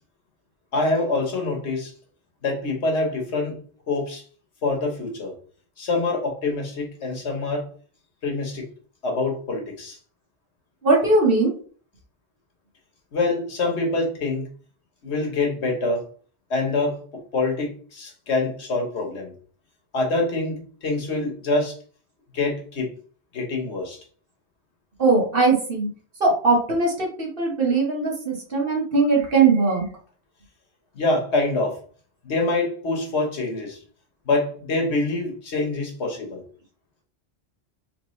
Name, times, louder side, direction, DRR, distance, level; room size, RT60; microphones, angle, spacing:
voice 1, 0.7-1.9 2.4-3.6 3.9-4.2 4.6-5.3 5.8-7.6 8.2-8.6 9.0-10.0 13.1-14.5 15.0-16.0 16.5-17.0 17.3-19.3 19.9-21.8 22.3-22.9 23.3-24.0 30.9-31.8 32.2-33.8 34.2-36.4, left 2 dB, 80° left, 1.4 m, -25 dB
voice 2, 10.8-11.5 25.0-25.9 26.2-29.8, right 3 dB, 55° right, 1.5 m, -20 dB
4.0 x 3.1 x 3.1 m
omnidirectional pair, 1.1 m